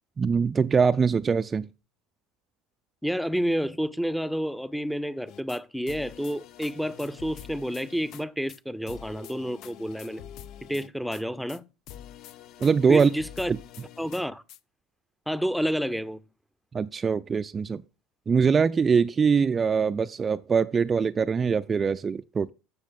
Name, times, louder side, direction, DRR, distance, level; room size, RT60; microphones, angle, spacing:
voice 1, 0.2-1.7 12.6-13.1 13.5-13.6 16.7-17.8 18.3-22.5, right 5 dB, 30° right, 0.5 m, -23 dB
voice 2, 3.0-10.2 10.7-11.6 12.9-13.5 14.0-14.4 15.3-16.2, equal, ahead, 0.8 m, -29 dB
sound 1, 5.3-5.6 5.9-8.2 8.5-8.6 8.9-11.2 11.5-11.6 11.9-14.6, left 11 dB, 55° left, 0.6 m, -45 dB
14.5 x 6.5 x 3.6 m
hypercardioid pair, 70°, 0 cm